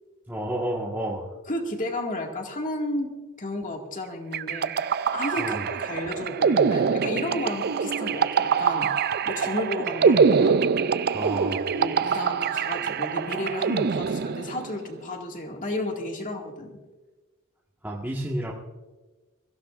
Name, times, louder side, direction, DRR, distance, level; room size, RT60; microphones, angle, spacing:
voice 1, 0.3-1.3 5.4-5.7 11.1-11.6 17.8-18.5, right 1 dB, 10° right, -5 dB, 1.5 m, -30 dB
voice 2, 1.5-3.1 3.4-4.7 5.1-5.6 5.8-10.6 11.8-16.7, left 1 dB, 40° left, 2 dB, 2.0 m, -32 dB
sound 1, 4.3-14.8, right 6 dB, 45° right, 0.4 m, -24 dB
23.0 x 15.5 x 2.5 m, 1.2 s
head